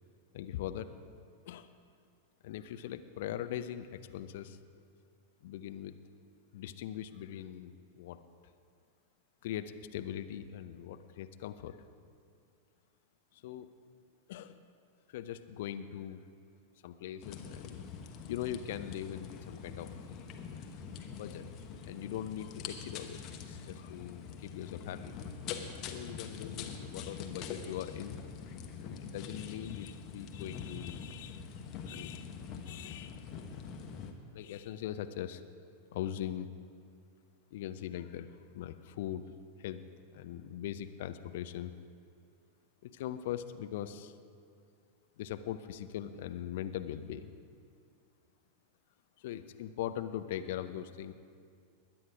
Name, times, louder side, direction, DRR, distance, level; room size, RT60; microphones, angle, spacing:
voice 1, 0.3-0.9 1.5-1.7 2.4-4.6 5.4-6.0 6.5-8.2 9.4-11.8 13.3-13.7 14.3-14.6 15.1-16.2 16.8-17.8 18.3-20.0 21.1-21.5 21.8-25.1 25.9-28.2 28.8-31.5 31.8-32.3 32.7-33.2 34.3-35.4 35.9-36.5 37.5-39.2 39.6-39.9 40.1-41.7 42.8-44.1 45.2-47.3 49.2-51.1, left 11 dB, 55° left, 10 dB, 0.6 m, -41 dB
sound 1, 17.2-34.1, left 6 dB, 35° left, 1.2 m, -44 dB
21.0 x 9.7 x 5.0 m, 2.3 s
figure-of-eight pair, 90°, 0 cm